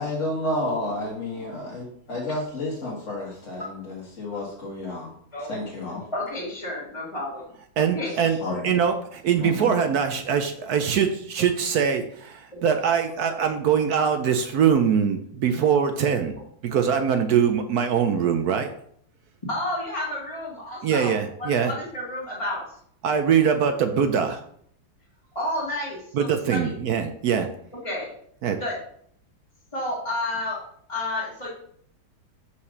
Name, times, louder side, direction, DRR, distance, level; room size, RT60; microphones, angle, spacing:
voice 1, 0.0-5.1 5.5-6.0 8.1-8.8 9.4-9.7, left 1 dB, 40° left, -4 dB, 2.0 m, -31 dB
voice 2, 6.1-7.4 7.8-8.1 12.6-12.7 19.5-21.1 21.4-22.8 25.4-26.8 27.8-28.1 28.6-28.7 29.7-30.6 30.9-31.5, left 1 dB, 15° left, -8 dB, 1.9 m, -31 dB
voice 3, 7.8-8.4 8.6-16.4 16.6-18.7 20.8-21.7 23.0-24.4 26.1-27.5 28.4-28.6, right 7 dB, 65° right, 7 dB, 1.0 m, -22 dB
5.5 x 4.9 x 6.5 m, 0.65 s
omnidirectional pair, 2.1 m